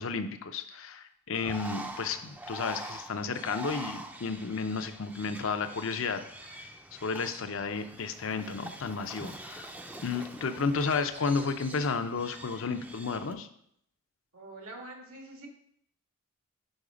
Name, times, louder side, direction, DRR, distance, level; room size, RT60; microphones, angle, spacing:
voice 1, 0.0-6.7 7.0-9.7 10.0-13.5, left 4 dB, 65° left, 9 dB, 0.5 m, -32 dB
Bird, 1.3-13.3, right 1 dB, 10° right, 0.4 m, -44 dB
voice 2, 14.3-15.5, right 2 dB, 90° right, 0 dB, 1.7 m, -45 dB
5.3 x 5.0 x 4.9 m, 0.69 s
head